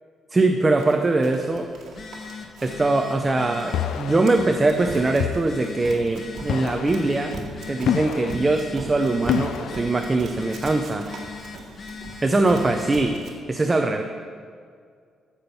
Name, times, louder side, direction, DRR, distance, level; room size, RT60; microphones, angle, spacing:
voice 1, 0.3-1.7 2.6-7.4 7.7-11.1 12.2-13.2 13.5-14.0, right 2 dB, 15° right, 5 dB, 0.6 m, -22 dB
Run, 0.8-13.3, right 3 dB, 60° right, 2.1 m, -40 dB
Telephone, 1.8-13.1, left 5 dB, 40° left, 1.1 m, -40 dB
sound 1, 3.7-4.3 5.2-5.6 6.5-7.0 7.9-8.4 9.3-9.8, left 9 dB, 70° left, 0.4 m, -26 dB
14.5 x 6.0 x 6.9 m, 2.1 s
cardioid pair, 160°, 0 cm